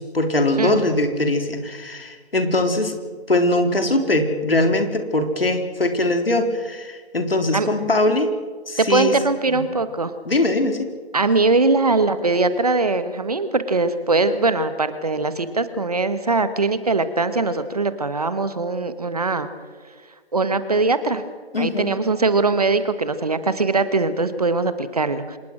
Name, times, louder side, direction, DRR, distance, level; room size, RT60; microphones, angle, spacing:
voice 1, 0.0-2.9 3.3-8.3 8.7-9.1 9.5-9.6 10.3-10.9 21.5-21.9, left 1 dB, 60° left, 6 dB, 3.9 m, -21 dB
voice 2, 8.8-10.1 11.1-19.5 20.3-21.2 21.6-25.4, right 3 dB, 35° right, 12 dB, 1.4 m, -21 dB
26.5 x 21.0 x 6.2 m, 1.5 s
figure-of-eight pair, 160°, 32 cm